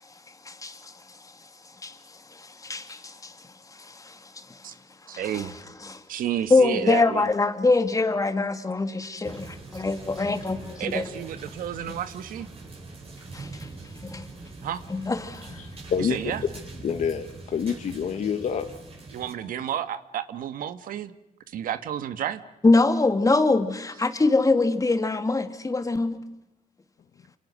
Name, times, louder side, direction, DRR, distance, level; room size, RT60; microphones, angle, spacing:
voice 1, 0.4-0.9 1.8-2.0 2.3-3.3 3.8-4.5 5.1-5.5 5.8-6.0 6.5-11.0 13.3-13.5 14.0-14.3 14.9-15.5 22.6-26.2, left 3 dB, 25° left, 2.4 m, -24 dB
voice 2, 5.1-5.5 6.1-7.3 9.7-9.8 10.8-12.5 14.6-14.8 16.0-16.4 19.1-21.1 21.5-22.4, right 10 dB, 80° right, 1.5 m, -31 dB
sound 1, 9.2-19.3, right 3 dB, 45° right, 7.8 m, -42 dB
voice 3, 15.5-18.7, left 7 dB, 60° left, 1.5 m, -28 dB
28.0 x 28.0 x 6.3 m
cardioid pair, 95°, 14 cm